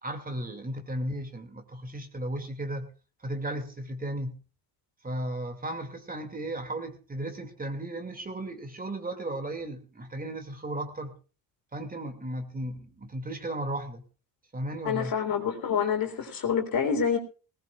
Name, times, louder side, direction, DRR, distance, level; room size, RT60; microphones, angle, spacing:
voice 1, 0.0-2.9 3.2-4.4 5.0-11.1 11.7-14.0 14.5-15.1, right 1 dB, 20° right, 6 dB, 2.3 m, -35 dB
voice 2, 14.8-17.2, left 7 dB, 50° left, 4 dB, 3.5 m, -27 dB
19.0 x 18.5 x 2.4 m, 0.35 s
cardioid pair, 95°, 43 cm